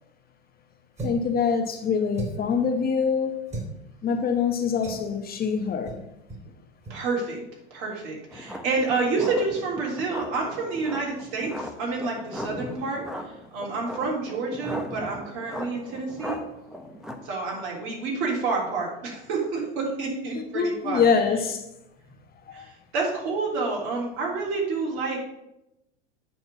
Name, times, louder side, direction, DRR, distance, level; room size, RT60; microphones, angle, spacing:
voice 1, 1.0-3.4 4.0-5.9 20.5-21.6 22.6-22.7, left 6 dB, 25° left, 5 dB, 1.1 m, -24 dB
sound 1, 1.0-1.3 2.1-2.5 3.5-3.7 4.8-5.1 5.8-6.0 6.3-6.5 6.8-7.0, right 2 dB, 20° right, 3.0 m, -35 dB
voice 2, 6.9-7.4 7.7-16.4 17.2-21.1 22.5-25.2, right 4 dB, 55° right, -2 dB, 3.6 m, -29 dB
sound 2, 8.3-17.2, equal, ahead, 0.9 m, -38 dB
9.1 x 4.0 x 7.0 m, 0.87 s
hypercardioid pair, 110°, 33 cm